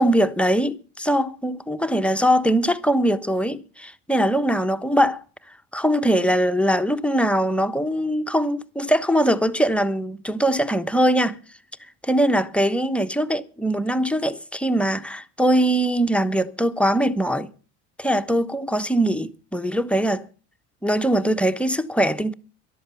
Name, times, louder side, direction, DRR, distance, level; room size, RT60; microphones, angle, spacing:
voice 1, 0.0-5.2 5.7-11.4 12.0-17.5 18.0-20.2 20.8-22.3, equal, 5° left, 1.1 m, -21 dB
13.5 x 11.5 x 7.0 m
hypercardioid pair, 75°, 37 cm